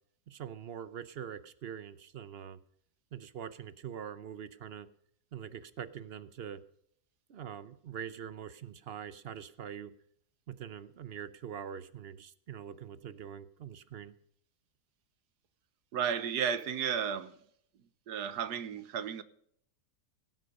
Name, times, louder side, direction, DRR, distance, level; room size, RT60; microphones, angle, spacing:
voice 1, 0.3-2.6 3.1-4.9 5.3-6.6 7.3-9.9 10.5-14.1, right 8 dB, 55° right, 0.7 m, -43 dB
voice 2, 15.9-17.3 18.1-19.2, right 8 dB, 90° right, 1.5 m, -33 dB
17.5 x 7.8 x 5.3 m
omnidirectional pair, 1.7 m